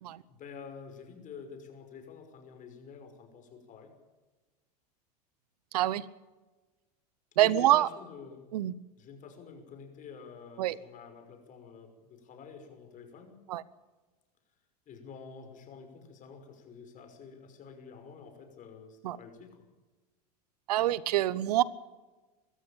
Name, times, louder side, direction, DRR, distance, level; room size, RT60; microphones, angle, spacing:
voice 1, 0.3-3.9 7.4-8.5 9.0-13.4 14.9-19.6, left 5 dB, 40° left, 5 dB, 5.8 m, -48 dB
voice 2, 5.7-6.0 7.4-7.9 8.5-8.7 10.6-10.8 13.5-13.6 19.0-19.2 20.7-21.6, right 14 dB, 75° right, 20 dB, 0.9 m, -25 dB
24.0 x 14.0 x 8.9 m, 1.2 s
hypercardioid pair, 100°, 20 cm